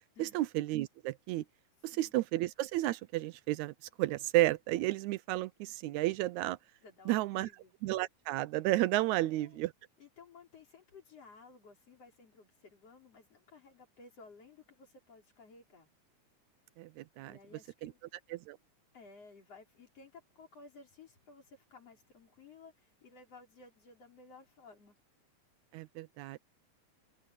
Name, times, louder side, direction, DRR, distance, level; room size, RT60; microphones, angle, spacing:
voice 1, 0.2-1.4 1.8-3.7 4.0-6.6 7.1-7.5 7.8-9.7 16.8-17.3 17.8-17.9 18.3-18.6 25.7-26.4, right 16 dB, 80° right, 1.9 m, -32 dB
voice 2, 6.8-7.7 9.1-9.6 10.0-15.9 17.2-18.0 18.9-25.0, left 4 dB, 55° left, 5.4 m, -56 dB
omnidirectional pair, 3.4 m